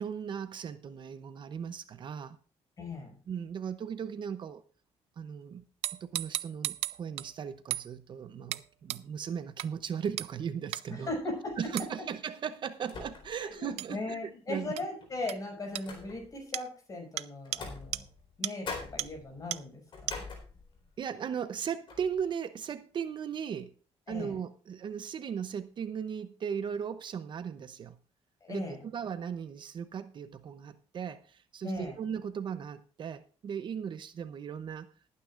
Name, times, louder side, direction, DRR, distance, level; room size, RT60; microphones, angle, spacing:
voice 1, 0.0-2.4 3.3-4.6 5.2-5.6 6.0-11.1 11.6-14.7 21.0-23.7 24.1-28.0 28.5-34.9, right 7 dB, 45° right, 0.7 m, -37 dB
voice 2, 2.8-3.1 10.9-11.7 13.4-18.0 18.4-20.2 24.1-24.3 28.4-28.8 31.6-32.0, left 2 dB, 35° left, 5.9 m, -38 dB
sound 1, 5.8-7.3 7.7-7.9 8.5-8.6 8.9-9.0 9.6-9.7 10.2-10.3 10.7-10.8 11.8-11.9 13.8-13.9 14.8-14.9 15.3-15.4 15.8-15.9 16.5-16.7 17.2-17.3 17.5-17.6 17.9-18.0 18.4-18.5 19.0-19.1 19.5-19.6 20.1-20.2, right 14 dB, 80° right, 0.5 m, -34 dB
sound 2, 11.5-11.8 12.8-13.5 13.9-14.0 15.0-16.4 17.4-18.4 18.6-21.0 21.4-21.6 21.9-22.2, left 4 dB, 50° left, 4.2 m, -44 dB
19.5 x 9.5 x 2.5 m
cardioid pair, 135°, 11 cm